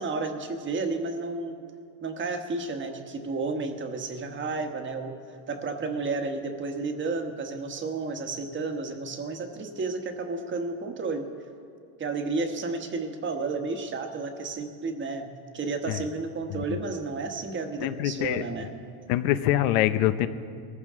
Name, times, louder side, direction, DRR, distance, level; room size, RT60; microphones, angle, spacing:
voice 1, 0.0-1.5 2.0-5.1 5.5-11.2 12.0-18.8, right 3 dB, 25° right, 5 dB, 1.2 m, -32 dB
voice 2, 17.8-18.4 19.1-20.3, left 13 dB, 90° left, 12 dB, 0.8 m, -24 dB
21.0 x 14.5 x 3.7 m, 2.3 s
cardioid pair, 145°, 44 cm